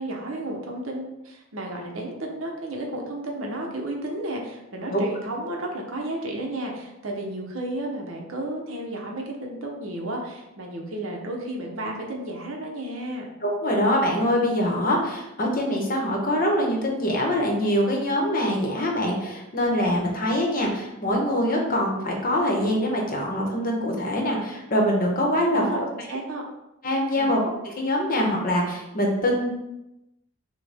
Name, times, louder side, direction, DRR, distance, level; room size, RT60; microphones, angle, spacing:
voice 1, 0.0-13.3 25.5-26.4 27.1-27.4, right 1 dB, 65° right, 0 dB, 0.8 m, -32 dB
voice 2, 13.4-25.9 26.8-27.4 27.8-29.5, equal, 40° left, 0 dB, 0.9 m, -24 dB
6.4 x 2.2 x 3.4 m, 0.91 s
head